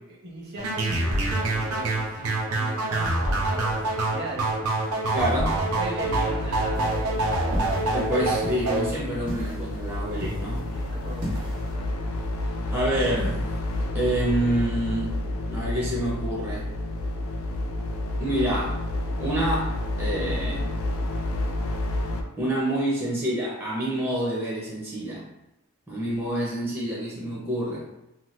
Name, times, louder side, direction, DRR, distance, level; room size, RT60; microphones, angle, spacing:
voice 1, 0.1-4.5 5.5-7.7 10.5-11.9 12.4-12.6 26.0-26.4, right 2 dB, 50° right, -4 dB, 0.9 m, -39 dB
sound 1, 0.6-8.9, right 2 dB, 75° right, 0.6 m, -26 dB
voice 2, 5.1-5.6 7.9-10.7 12.7-13.5 13.9-15.2 15.5-16.7 18.2-18.8 19.2-20.7 22.4-25.3 25.9-27.9, right 1 dB, 10° right, -7 dB, 0.5 m, -27 dB
sound 2, 6.0-22.2, left 1 dB, 65° left, 0.4 m, -30 dB
sound 3, 6.7-11.7, right 1 dB, 90° right, 1.0 m, -39 dB
2.7 x 2.2 x 3.1 m, 0.91 s
head